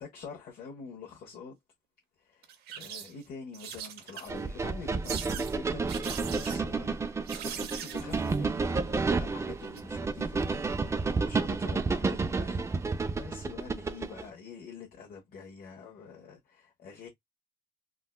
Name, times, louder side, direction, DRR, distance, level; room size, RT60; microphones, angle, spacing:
voice 1, 0.0-1.6 2.2-17.1, left 5 dB, 60° left, 1.2 m, -46 dB
sound 1, 2.4-3.2 3.5-4.5 5.0-5.6 5.9-6.6 7.3-8.4 9.6-9.8, right 9 dB, 70° right, 0.7 m, -41 dB
sound 2, 4.3-14.3, right 4 dB, 15° right, 0.4 m, -31 dB
3.7 x 2.3 x 2.2 m
cardioid pair, 110°, 17 cm